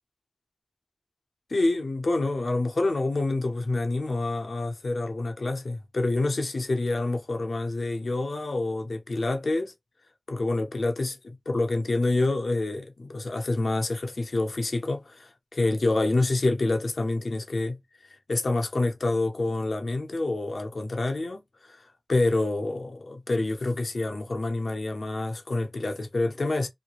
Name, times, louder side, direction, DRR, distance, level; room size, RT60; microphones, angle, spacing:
voice 1, 1.5-9.7 10.3-17.8 18.3-21.8 22.1-26.7, left 2 dB, 70° left, 0.7 m, -27 dB
3.0 x 2.2 x 2.4 m
cardioid pair, 45°, 0 cm